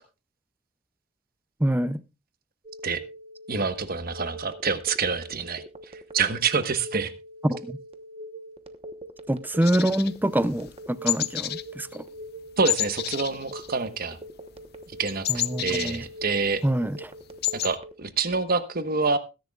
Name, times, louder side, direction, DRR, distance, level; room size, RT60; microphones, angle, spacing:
voice 1, 1.6-2.0 7.4-7.8 9.3-12.1 15.3-16.1 16.6-17.1, right 1 dB, 10° right, 0.5 m, -25 dB
Telephone, 2.6-17.9, right 1 dB, 30° right, 1.0 m, -42 dB
voice 2, 3.5-5.6 5.9-7.1 12.6-14.2 15.0-16.6 17.5-19.2, right 4 dB, 50° right, 1.2 m, -27 dB
sound 1, 9.6-10.8 11.1-11.7 11.9-12.2 12.6-14.2 14.4-16.5 16.9-17.0 17.2-17.7, left 13 dB, 50° left, 0.6 m, -30 dB
21.0 x 10.5 x 2.4 m
head